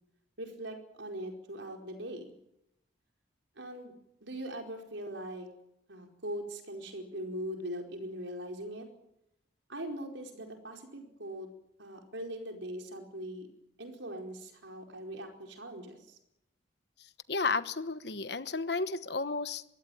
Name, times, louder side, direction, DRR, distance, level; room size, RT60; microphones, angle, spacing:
voice 1, 0.4-2.3 3.6-5.5 5.9-8.9 9.7-11.5 11.8-13.5 13.8-16.2, right 1 dB, 75° right, 3 dB, 4.7 m, -41 dB
voice 2, 17.0-19.6, left 4 dB, 60° left, 12 dB, 1.2 m, -33 dB
23.5 x 16.5 x 9.3 m, 0.83 s
head